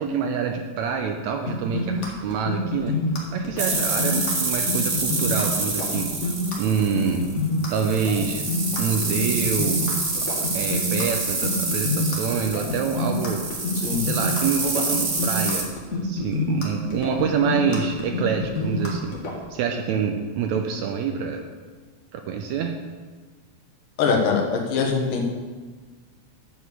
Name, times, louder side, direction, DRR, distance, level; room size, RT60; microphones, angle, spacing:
voice 1, 0.0-2.9 3.3-6.1 6.6-7.3 7.7-8.4 8.8-9.8 10.2-13.5 14.0-19.2 19.5-21.5 22.1-22.8, right 6 dB, 75° right, 4 dB, 1.7 m, -26 dB
sound 1, 1.5-19.4, left 2 dB, 50° left, 0.9 m, -27 dB
sound 2, 3.6-15.6, right 3 dB, 60° right, 0.8 m, -27 dB
voice 2, 24.0-25.2, left 5 dB, 90° left, 1 dB, 2.9 m, -22 dB
10.0 x 4.8 x 6.7 m, 1.4 s
omnidirectional pair, 3.7 m